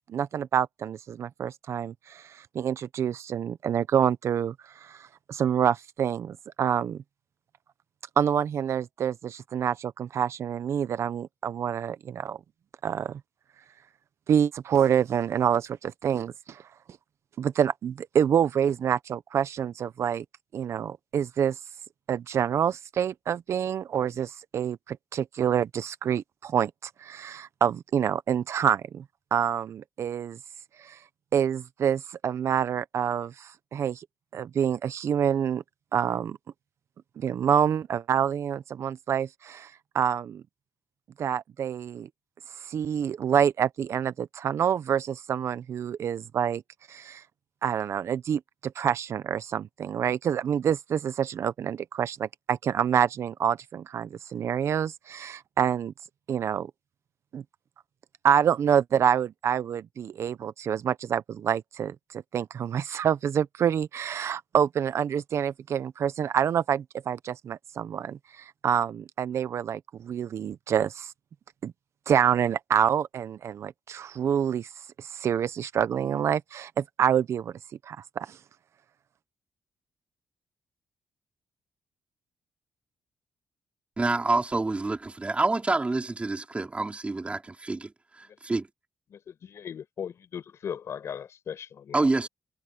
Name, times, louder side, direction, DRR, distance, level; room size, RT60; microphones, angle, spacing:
voice 1, 0.1-7.0 8.2-12.4 12.8-13.2 14.3-16.6 17.4-20.2 20.5-21.6 22.1-29.0 29.3-30.4 30.8-31.0 31.3-34.0 34.3-35.6 35.9-36.4 37.2-40.4 41.2-42.1 42.6-46.6 46.9-47.2 47.6-55.9 56.3-56.7 57.3-57.4 58.2-71.1 71.6-71.7 72.1-74.7 75.0-77.5 77.9-78.4, right 8 dB, 65° right, 0.8 m, -27 dB
voice 2, 84.0-88.7 91.9-92.3, right 3 dB, 25° right, 4.8 m, -27 dB
voice 3, 89.1-92.1, left 8 dB, 60° left, 5.1 m, -38 dB
cardioid pair, 70°, 5 cm